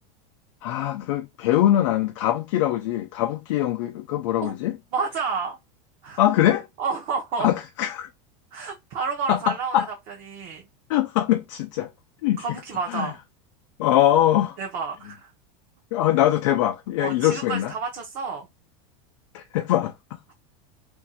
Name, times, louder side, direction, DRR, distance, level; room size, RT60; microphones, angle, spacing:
voice 1, 0.6-4.8 6.2-6.7 7.4-8.1 9.3-9.9 10.9-11.9 12.2-12.4 12.9-13.1 13.8-14.6 15.9-17.7 19.3-19.9, left 12 dB, 65° left, 0.4 m, -22 dB
voice 2, 4.9-5.6 6.0-6.2 6.8-7.5 8.5-10.6 12.4-13.2 14.6-15.3 17.0-18.5, right 5 dB, 40° right, 0.7 m, -30 dB
2.6 x 2.2 x 3.9 m
supercardioid pair, 170°, 17 cm